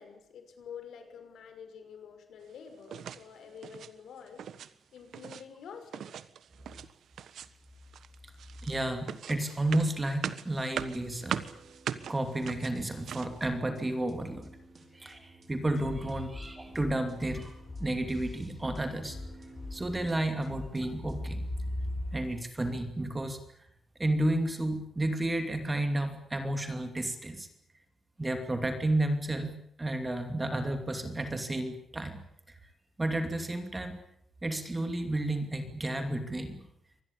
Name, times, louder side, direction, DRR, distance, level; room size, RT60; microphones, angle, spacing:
voice 1, 0.0-4.5 4.9-6.1, left 7 dB, 75° left, 7 dB, 5.9 m, -48 dB
sound 1, 2.9-3.3 3.6-3.9 4.3-4.7 5.0-5.4 5.9-6.9 7.2-7.6 7.9-13.4, right 8 dB, 70° right, 1.4 m, -40 dB
voice 2, 8.6-11.4 12.1-14.5 14.9-19.2 19.7-21.8 22.1-23.4 24.0-27.5 28.2-32.2 33.0-34.0 34.4-36.7, right 1 dB, 15° right, 6 dB, 2.7 m, -32 dB
sound 2, 10.8-21.4, right 3 dB, 35° right, 5.2 m, -54 dB
sound 3, 15.7-22.2, left 2 dB, 25° left, 3.9 m, -44 dB
25.0 x 20.5 x 8.6 m, 0.74 s
wide cardioid pair, 165°, 0 cm